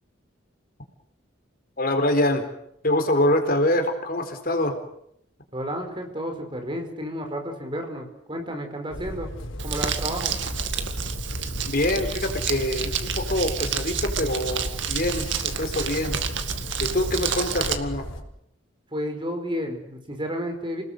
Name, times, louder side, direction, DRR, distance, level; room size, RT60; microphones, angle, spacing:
voice 1, 1.8-2.5 2.8-4.8 11.7-16.1 16.8-18.1, left 1 dB, 50° left, 6 dB, 4.0 m, -25 dB
voice 2, 5.5-9.3 9.6-10.3 18.9-20.8, equal, 25° right, 5 dB, 4.9 m, -31 dB
sound 1, 8.9-18.2, equal, 80° left, 4.6 m, -35 dB
Crumpling crinkling, 9.6-17.8, right 6 dB, 70° right, 2.1 m, -29 dB
29.5 x 20.0 x 7.9 m, 0.74 s
head